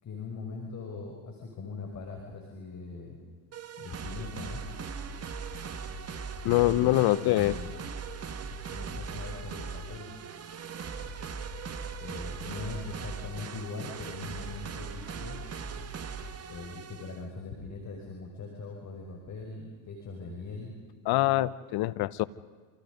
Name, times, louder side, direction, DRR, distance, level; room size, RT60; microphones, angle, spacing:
voice 1, 0.0-3.2 3.8-4.6 6.4-7.7 8.7-10.1 12.0-15.4 16.5-20.7, left 4 dB, 35° left, 0 dB, 5.9 m, -41 dB
sound 1, 3.5-17.2, right 5 dB, 30° right, 2.2 m, -39 dB
voice 2, 6.4-7.6 21.0-22.2, left 17 dB, 55° left, 17 dB, 1.2 m, -24 dB
28.5 x 27.5 x 5.3 m, 1.5 s
hypercardioid pair, 90°, 46 cm